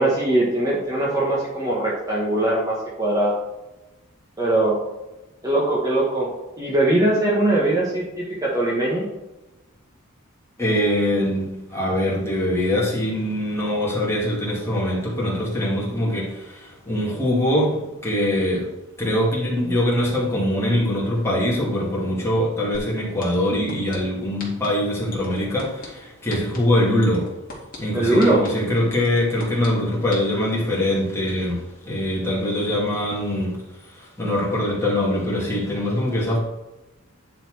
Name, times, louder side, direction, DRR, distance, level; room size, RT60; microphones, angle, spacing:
voice 1, 0.0-3.4 4.4-4.8 5.4-6.3 6.6-9.1 27.9-28.4, right 1 dB, 15° right, -5 dB, 1.4 m, -21 dB
voice 2, 10.6-17.8 18.0-18.7 19.0-27.3 27.8-33.6 33.9-36.4, left 1 dB, 15° left, -5 dB, 2.3 m, -23 dB
sound 1, 22.7-22.8 23.2-24.0 24.4-24.7 25.1-25.9 26.3-26.6 27.0-27.8 28.2-28.5 28.9-29.7 30.1-30.2, left 4 dB, 45° left, 2.2 m, -37 dB
9.9 x 4.2 x 4.8 m, 1.0 s
head